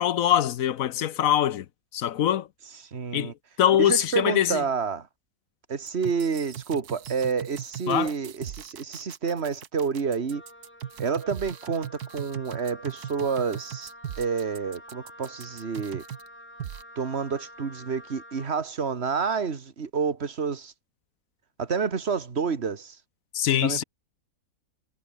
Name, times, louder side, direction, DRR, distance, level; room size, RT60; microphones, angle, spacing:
voice 1, 0.0-1.6 1.9-2.5 3.1-3.3 3.6-4.6 7.9-8.1 23.3-23.8, left 11 dB, 65° left, 1.1 m, -23 dB
voice 2, 2.9-3.3 3.8-5.1 5.7-10.4 11.0-13.9 14.2-16.0 17.0-20.7 21.6-23.0 23.6-23.8, right 5 dB, 45° right, 2.0 m, -29 dB
sound 1, 5.9-16.3 16.6-16.8, right 9 dB, 80° right, 1.6 m, -39 dB
Wind instrument woodwind instrument, 10.3-18.6, equal, 5° left, 3.7 m, -48 dB
omnidirectional pair, 1.6 m